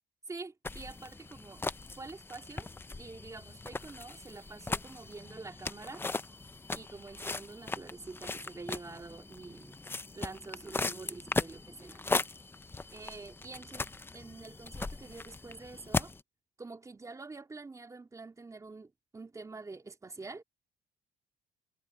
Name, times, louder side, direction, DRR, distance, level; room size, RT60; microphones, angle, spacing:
voice 1, 0.3-2.7 3.0-6.0 6.7-9.8 10.1-12.3 12.9-13.9 14.1-16.1 16.6-20.4, right 3 dB, 20° right, 3.0 m, -47 dB
sound 1, 0.6-16.2, left 3 dB, 15° left, 0.6 m, -38 dB
cardioid pair, 110°, 17 cm